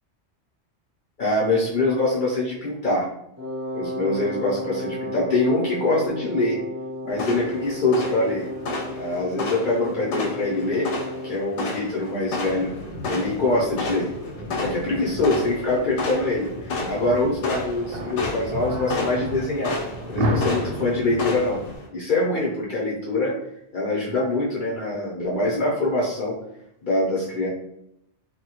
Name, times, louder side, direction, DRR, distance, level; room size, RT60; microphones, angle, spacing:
voice 1, 1.2-3.1 3.7-6.6 7.0-8.5 8.9-10.9 11.2-12.7 13.0-14.1 14.6-19.8 20.1-21.6 21.9-23.3 23.7-26.4 26.8-27.5, left 2 dB, 55° left, -4 dB, 0.6 m, -24 dB
Wind instrument woodwind instrument, 3.4-11.4, left 1 dB, 20° right, 0.5 m, -33 dB
sound 1, 7.1-21.9, left 3 dB, 85° left, 0.9 m, -32 dB
sound 2, 12.4-21.8, equal, 65° right, 0.7 m, -32 dB
3.1 x 2.1 x 2.8 m, 0.78 s
omnidirectional pair, 1.1 m